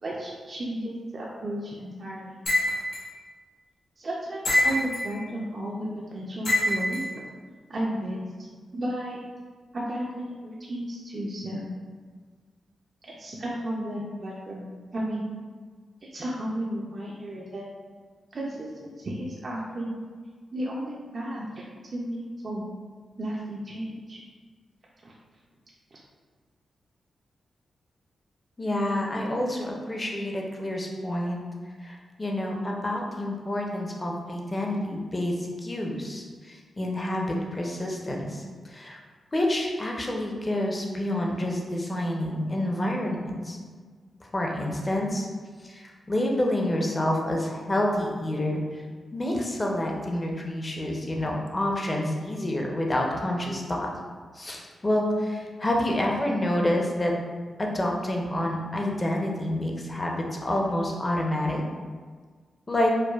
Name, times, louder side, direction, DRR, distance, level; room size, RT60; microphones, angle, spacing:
voice 1, 0.0-2.4 4.0-7.0 7.7-8.3 8.7-9.3 9.7-11.7 13.0-14.7 14.9-15.3 16.1-17.6 18.3-20.0 20.5-21.6 21.9-22.7 23.2-24.2 25.0-25.1 25.9-26.0, right 1 dB, 50° right, -4 dB, 0.5 m, -33 dB
sound 1, 2.5-3.1 4.4-5.1 6.4-7.0, left 1 dB, 85° left, 1.1 m, -24 dB
voice 2, 28.6-31.4 31.8-39.0 39.3-43.6 44.3-45.3 45.6-48.8 49.1-53.9 54.3-57.1 57.6-61.6 62.7-62.9, left 1 dB, 30° left, 0 dB, 0.6 m, -28 dB
4.5 x 2.2 x 2.3 m, 1.5 s
supercardioid pair, 45°, 0 cm